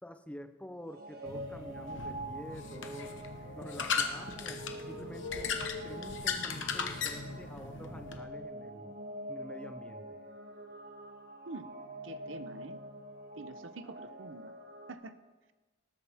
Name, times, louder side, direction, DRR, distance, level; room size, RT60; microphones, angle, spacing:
voice 1, 0.0-3.1 3.5-5.5 5.8-9.0 9.3-10.2, equal, 5° left, 8 dB, 0.7 m, -48 dB
sound 1, 0.8-14.9, right 1 dB, 55° right, 1.5 m, -46 dB
sound 2, 1.3-8.2, left 5 dB, 70° left, 1.1 m, -37 dB
voice 2, 12.0-12.8 13.4-14.5 14.9-15.2, right 3 dB, 85° right, 11 dB, 0.8 m, -46 dB
19.5 x 13.0 x 3.6 m, 1.2 s
head